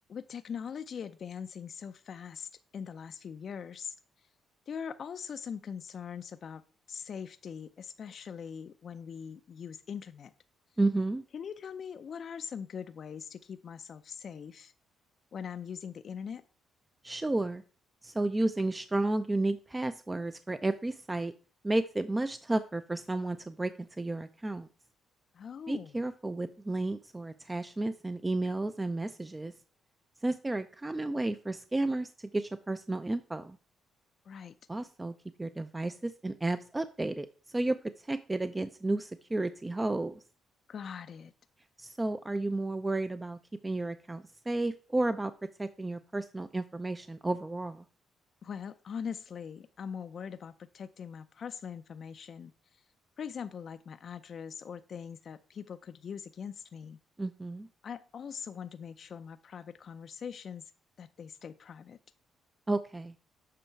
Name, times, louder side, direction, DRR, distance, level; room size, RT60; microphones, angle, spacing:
voice 1, 0.1-4.3 4.7-6.6 6.9-10.3 11.3-14.7 15.3-16.4 25.3-26.0 34.2-34.6 40.7-41.3 48.4-52.9 53.2-57.0 57.8-60.7 61.0-62.0, left 7 dB, 55° left, 9 dB, 0.4 m, -42 dB
voice 2, 10.8-11.2 17.0-17.6 18.0-21.3 21.6-24.7 25.7-29.5 30.2-33.6 34.7-35.1 35.4-37.8 38.0-40.2 41.8-45.3 45.6-47.8 57.2-57.7 62.7-63.1, right 2 dB, 15° right, 11 dB, 0.5 m, -32 dB
7.6 x 5.6 x 4.4 m, 0.38 s
cardioid pair, 90°, 0 cm